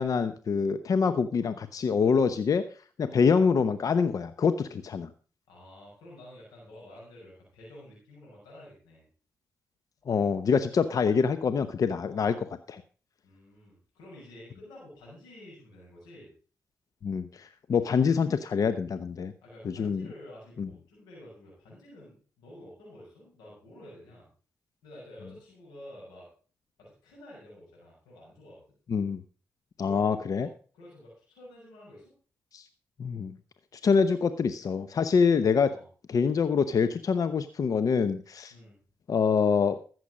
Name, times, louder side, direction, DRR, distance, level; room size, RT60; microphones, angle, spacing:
voice 1, 0.0-2.7 3.0-5.1 10.1-12.8 17.0-19.3 19.6-20.1 20.6-20.7 28.9-29.2 29.8-30.5 32.5-32.6 33.0-33.4 33.8-35.7 36.1-38.5 39.1-39.8, left 5 dB, 60° left, 12 dB, 0.8 m, -25 dB
voice 2, 5.5-9.0 12.1-12.2 13.2-16.3 19.4-24.3 24.8-26.3 26.8-28.7 29.8-30.5 30.7-32.1 35.7-35.8 38.5-38.8, left 1 dB, 85° left, -3 dB, 6.2 m, -50 dB
14.0 x 7.8 x 5.1 m, 0.39 s
supercardioid pair, 45°, 7 cm